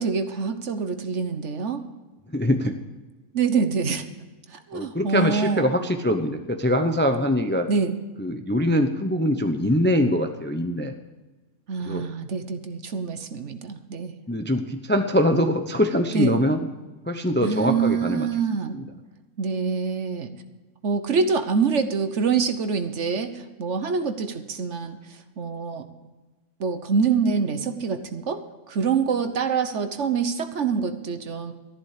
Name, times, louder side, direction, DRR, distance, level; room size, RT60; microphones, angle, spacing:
voice 1, 0.0-1.8 3.3-4.0 4.5-5.7 7.7-8.0 11.7-14.1 16.1-16.4 17.4-18.8 19.4-20.3 20.8-25.8 26.6-31.5, right 5 dB, 55° right, 9 dB, 1.3 m, -25 dB
voice 2, 2.3-2.8 4.7-7.7 8.2-10.9 11.9-12.0 14.3-16.6 17.1-18.3 18.7-18.8, equal, 10° left, 7 dB, 0.6 m, -23 dB
13.5 x 11.5 x 5.0 m, 1.2 s
omnidirectional pair, 1.5 m